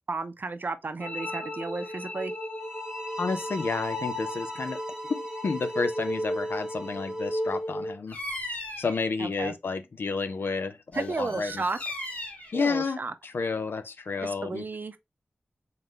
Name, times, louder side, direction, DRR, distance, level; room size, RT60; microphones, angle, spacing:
voice 1, 0.1-2.3 9.2-9.5 10.9-11.9 12.5-13.1 14.2-15.0, right 3 dB, 55° right, 0.6 m, -33 dB
sound 1, 1.0-8.0, left 1 dB, 60° left, 1.9 m, -34 dB
sound 2, 2.6-7.6, right 1 dB, 15° right, 0.7 m, -41 dB
voice 2, 3.2-4.8 5.1-8.2 8.8-11.5 12.5-14.6, left 4 dB, 75° left, 0.6 m, -31 dB
Bird vocalization bird call bird song, 8.1-9.1 10.9-12.5, left 1 dB, 45° left, 2.2 m, -37 dB
3.9 x 3.7 x 3.1 m
wide cardioid pair, 75°, 4 cm